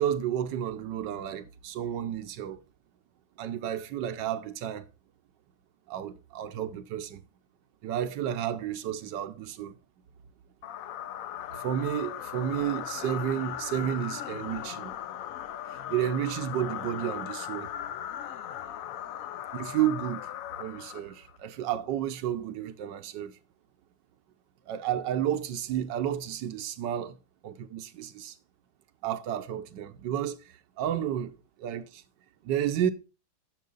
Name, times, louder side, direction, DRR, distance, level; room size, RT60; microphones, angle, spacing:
voice 1, 0.0-2.6 3.4-4.8 5.9-7.2 7.8-9.8 11.5-14.9 15.9-17.7 19.5-20.3 20.6-23.3 24.7-27.2 27.4-28.4 29.0-32.0 32.4-32.9, right 10 dB, 85° right, 1.4 m, -31 dB
sound 1, 10.6-21.4, left 10 dB, 70° left, 0.9 m, -38 dB
10.5 x 6.2 x 3.9 m
omnidirectional pair, 1.9 m